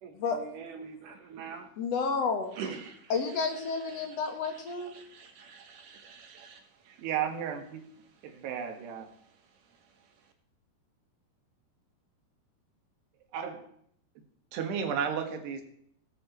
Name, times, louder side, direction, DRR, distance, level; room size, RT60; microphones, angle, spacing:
voice 1, 0.0-1.7 2.6-3.1 3.9-7.0 8.2-8.4, right 6 dB, 65° right, 5 dB, 2.4 m, -45 dB
voice 2, 1.8-2.6 3.1-5.0, left 5 dB, 55° left, 5 dB, 1.9 m, -31 dB
voice 3, 7.0-7.6 8.2-9.1 13.3-13.7 14.5-15.6, right 7 dB, 85° right, 5 dB, 3.7 m, -33 dB
18.0 x 8.8 x 4.6 m, 0.68 s
omnidirectional pair, 4.6 m